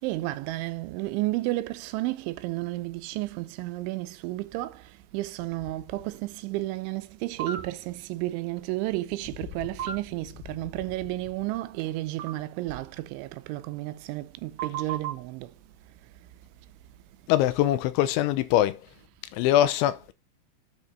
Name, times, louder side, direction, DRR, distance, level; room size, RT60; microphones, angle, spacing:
voice 1, 0.0-15.5, right 18 dB, 85° right, 3.1 m, -32 dB
sound 1, 7.4-7.6 9.8-9.9 12.2-12.3 14.6-15.1, right 8 dB, 55° right, 2.0 m, -32 dB
voice 2, 17.3-18.8 19.3-20.1, left 13 dB, 85° left, 3.2 m, -23 dB
9.5 x 5.1 x 5.4 m
omnidirectional pair, 5.3 m